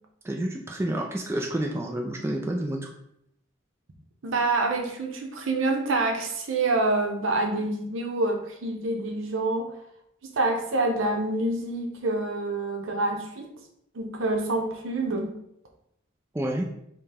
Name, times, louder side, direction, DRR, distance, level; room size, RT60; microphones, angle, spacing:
voice 1, 0.2-2.8 16.3-16.7, right 1 dB, 10° right, 0 dB, 0.3 m, -29 dB
voice 2, 4.2-9.7 10.4-13.5 13.9-15.3, right 2 dB, 75° right, 2 dB, 0.7 m, -27 dB
5.6 x 2.2 x 3.4 m, 0.75 s
head